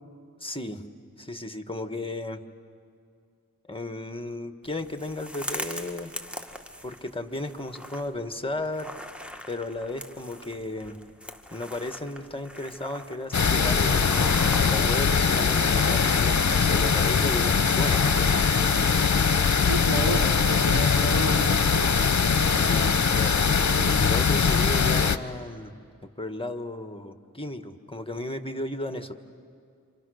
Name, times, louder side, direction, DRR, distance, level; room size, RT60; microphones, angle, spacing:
voice 1, 0.4-0.8 1.2-2.4 3.6-6.1 6.8-8.9 9.5-11.0 11.5-18.4 22.5-25.7 26.0-29.1, left 2 dB, 15° left, 8 dB, 1.7 m, -34 dB
sound 1, 4.6-22.7, equal, 5° right, 1.9 m, -42 dB
sound 2, 13.3-25.2, left 5 dB, 55° left, 1.0 m, -22 dB
voice 2, 19.7-22.0, right 2 dB, 75° right, 1 dB, 3.5 m, -31 dB
28.0 x 27.0 x 6.5 m, 2.3 s
cardioid pair, 45°, 35 cm